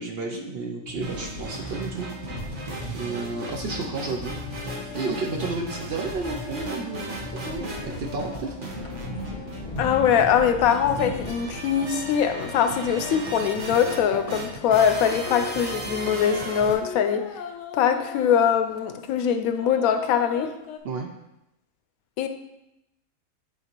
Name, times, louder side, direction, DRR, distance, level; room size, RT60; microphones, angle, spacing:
voice 1, 0.0-2.1 2.9-4.3 4.9-8.5 20.8-21.1, right 4 dB, 60° right, 3 dB, 0.7 m, -32 dB
sound 1, 0.9-11.5, left 1 dB, 30° left, 0.9 m, -38 dB
sound 2, 1.0-16.7, right 1 dB, 40° right, 1.0 m, -37 dB
sound 3, 1.2-5.4 5.9-9.6 10.1-14.4 14.9-18.5 19.0-20.8, left 6 dB, 70° left, 0.9 m, -42 dB
voice 2, 9.8-17.2 17.7-20.5 22.2-22.3, left 8 dB, 85° left, 8 dB, 1.0 m, -22 dB
8.1 x 3.9 x 3.0 m, 0.87 s
omnidirectional pair, 1.4 m